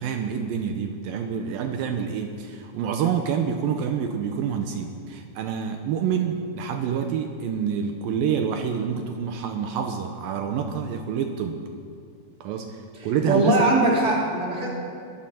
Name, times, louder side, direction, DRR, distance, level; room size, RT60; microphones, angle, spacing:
voice 1, 0.0-11.6 12.4-12.8 13.0-13.7, right 7 dB, 80° right, 5 dB, 2.5 m, -27 dB
voice 2, 13.2-14.7, right 2 dB, 20° right, -4 dB, 3.1 m, -20 dB
22.5 x 14.5 x 4.3 m, 2.4 s
omnidirectional pair, 4.2 m